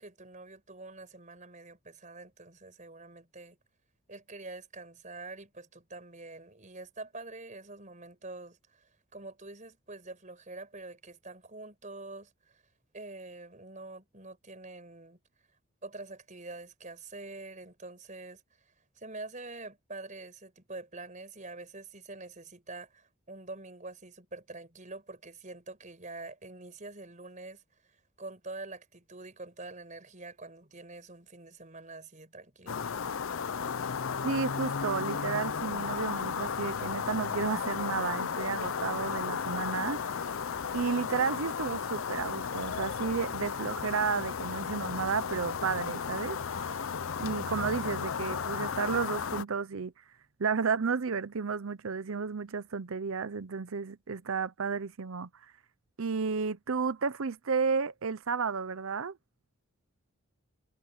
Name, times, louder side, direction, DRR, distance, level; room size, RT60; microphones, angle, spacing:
voice 1, 0.0-3.6 4.1-12.6 12.9-15.2 15.8-32.8, right 2 dB, 35° right, 5.1 m, -46 dB
sound 1, 32.7-49.4, left 6 dB, 65° left, 0.6 m, -34 dB
voice 2, 34.2-40.3 40.7-46.7 47.2-49.9 50.4-55.3 56.0-59.2, right 5 dB, 70° right, 0.7 m, -32 dB
head